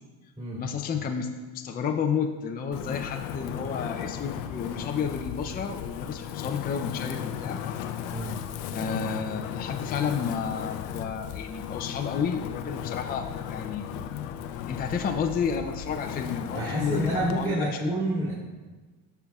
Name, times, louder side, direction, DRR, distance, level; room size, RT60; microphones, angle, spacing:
voice 1, 0.5-7.6 8.7-13.9 14.7-17.7, left 6 dB, 20° left, 4 dB, 0.5 m, -31 dB
Wind, 2.7-17.5, left 10 dB, 75° left, 0.7 m, -35 dB
voice 2, 16.5-18.3, right 1 dB, 15° right, -9 dB, 2.5 m, -28 dB
14.0 x 5.7 x 2.4 m, 1.3 s
supercardioid pair, 105°, 45 cm